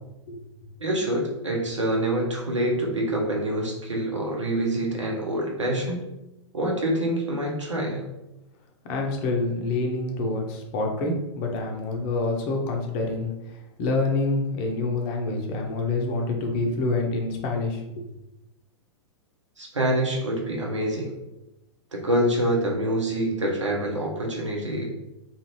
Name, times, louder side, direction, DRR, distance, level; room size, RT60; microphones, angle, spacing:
voice 1, 0.8-6.0 6.5-8.1 19.6-21.1 21.9-24.9, right 1 dB, 85° right, -1 dB, 0.8 m, -26 dB
voice 2, 8.9-18.1, left 2 dB, 40° left, 1 dB, 0.7 m, -27 dB
2.5 x 2.4 x 3.1 m, 0.93 s
figure-of-eight pair, 105°, 15 cm